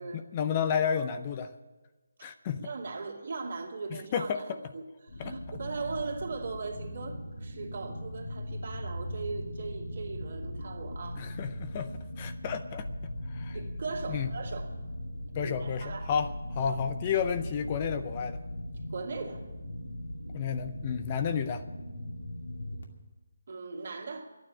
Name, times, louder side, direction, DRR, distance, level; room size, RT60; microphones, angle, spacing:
voice 1, 0.1-1.5 2.2-2.7 3.9-4.7 5.2-5.6 11.2-11.9 12.2-13.6 14.1-14.3 15.3-18.4 20.3-21.6, left 7 dB, 25° left, 9 dB, 0.6 m, -32 dB
voice 2, 2.6-4.4 4.7-11.3 13.5-14.7 15.4-16.1 18.9-19.5 23.5-24.4, right 4 dB, 55° right, 0 dB, 2.4 m, -39 dB
sound 1, 5.1-22.8, left 1 dB, 75° left, 2.4 m, -39 dB
12.0 x 9.3 x 10.0 m, 1.2 s
figure-of-eight pair, 160°, 0 cm